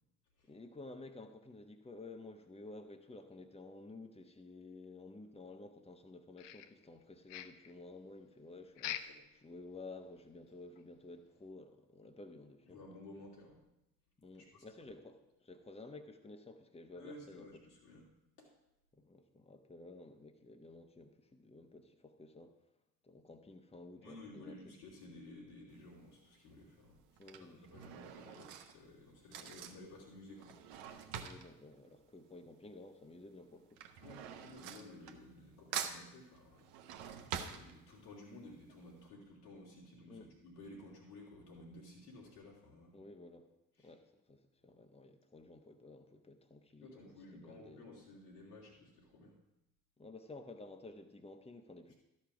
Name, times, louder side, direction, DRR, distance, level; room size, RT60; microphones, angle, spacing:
voice 1, 0.4-12.8 14.2-17.5 18.9-22.5 23.0-24.6 27.2-27.8 31.2-33.8 40.1-40.3 42.9-43.5 43.8-47.8 50.0-51.9, left 2 dB, 15° left, 5 dB, 1.1 m, -53 dB
sound 1, 6.4-7.0 7.3-7.7 8.8-9.3 9.6-9.7 10.2-10.3 10.8-10.9, left 11 dB, 60° left, 0.8 m, -44 dB
voice 2, 12.7-13.6 14.4-14.6 16.9-18.0 18.4-18.5 24.0-27.0 27.4-30.6 30.8-31.0 34.0-42.9 43.8-43.9 46.8-49.4, left 2 dB, 85° left, -5 dB, 3.0 m, -54 dB
Drawer open or close / Cutlery silverware, 25.7-26.1 26.9-32.8 33.1-35.5 35.7-38.3 38.7-38.8 39.0-39.1, right 8 dB, 65° right, 1.0 m, -46 dB
12.5 x 5.3 x 6.0 m, 0.90 s
figure-of-eight pair, 45°, 45 cm